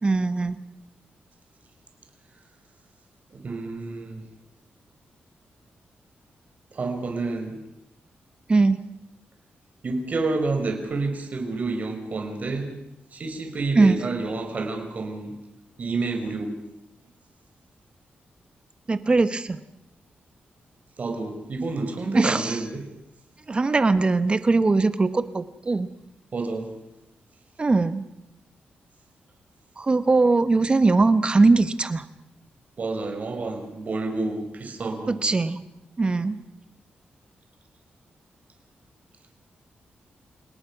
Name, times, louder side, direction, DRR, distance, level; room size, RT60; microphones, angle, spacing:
voice 1, 0.0-0.6 8.5-8.8 13.7-14.0 18.9-19.6 22.1-22.6 23.5-25.9 27.6-28.0 29.8-32.0 35.1-35.6 36.0-36.4, right 3 dB, 30° right, 12 dB, 1.2 m, -20 dB
voice 2, 3.4-4.2 6.7-7.5 9.8-12.7 13.1-15.3 15.8-16.5 21.0-22.8 26.3-26.7 32.8-35.2, right 3 dB, 45° right, 4 dB, 4.6 m, -29 dB
29.5 x 18.5 x 6.0 m, 0.89 s
wide cardioid pair, 115°, 4 cm